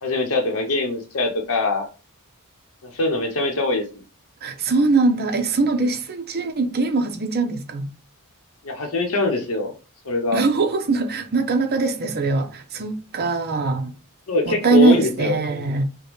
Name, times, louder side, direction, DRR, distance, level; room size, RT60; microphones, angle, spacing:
voice 1, 0.0-1.9 2.8-3.8 8.6-9.7 10.1-10.4 14.3-15.3, left 2 dB, 70° left, 0.8 m, -22 dB
voice 2, 4.4-7.9 10.3-13.9 14.5-15.8, right 3 dB, 45° right, 0.7 m, -21 dB
5.2 x 2.2 x 3.1 m
head